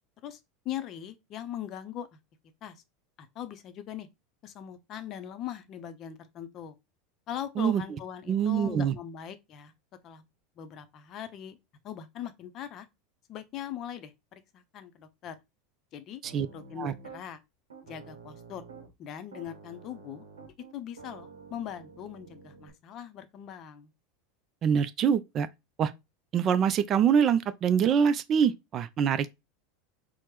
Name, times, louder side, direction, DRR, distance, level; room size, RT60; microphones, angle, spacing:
voice 1, 0.6-2.2 2.6-2.8 3.2-4.1 4.4-6.8 7.3-9.7 10.0-10.2 10.6-11.6 11.8-12.9 13.3-15.3 15.9-16.2 16.5-17.4 17.8-18.6 19.0-20.2 20.7-23.9, left 10 dB, 45° left, 0.5 m, -40 dB
voice 2, 8.3-8.9 16.2-16.5 16.8-16.9 24.6-25.5 25.8-25.9 26.3-29.3, right 8 dB, 40° right, 0.3 m, -25 dB
Piano, 16.2-17.2 17.7-18.9 19.3-22.7, right 5 dB, 85° right, 0.7 m, -49 dB
4.3 x 2.0 x 3.0 m
hypercardioid pair, 85°, 0 cm